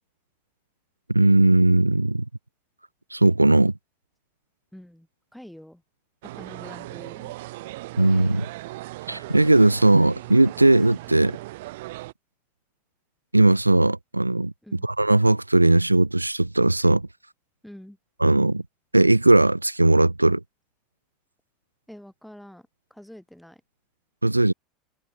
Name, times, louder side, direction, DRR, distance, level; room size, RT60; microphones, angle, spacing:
voice 1, 1.1-2.2 3.1-3.7 8.0-8.5 9.1-11.4 13.3-14.5 14.8-17.1 18.2-18.6 18.9-20.4 24.2-24.5, right 2 dB, 90° right, 0.3 m, -18 dB
voice 2, 4.7-5.8 6.3-7.3 14.6-14.9 17.6-18.0 21.9-23.6, equal, ahead, 4.1 m, -46 dB
sound 1, 6.2-12.1, right 19 dB, 60° right, 2.4 m, -38 dB
figure-of-eight pair, 75°, 0 cm